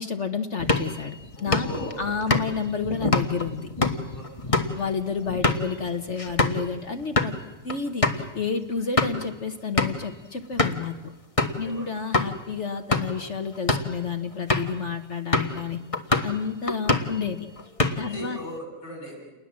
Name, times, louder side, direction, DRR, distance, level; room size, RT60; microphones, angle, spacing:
voice 1, 0.0-1.1 1.4-3.7 4.7-7.3 7.6-11.1 11.6-15.8 16.2-17.5 18.0-18.4, left 5 dB, 40° left, 7 dB, 1.1 m, -30 dB
sound 1, 0.6-6.6 7.0-7.3 7.7-7.8 8.0-8.2 8.7-9.3 9.8-10.1 10.6-10.9 11.4-11.6 12.1-12.3 12.8-13.2 13.5-13.9 14.5-14.8 15.3-15.6 15.9-16.4 16.7-17.2 17.6-18.2, left 2 dB, 20° left, 1.1 m, -25 dB
voice 2, 1.4-2.0 4.1-4.7 11.6-11.9 18.0-19.3, equal, 70° left, 0 dB, 8.2 m, -39 dB
29.5 x 20.0 x 7.5 m, 1.1 s
omnidirectional pair, 2.4 m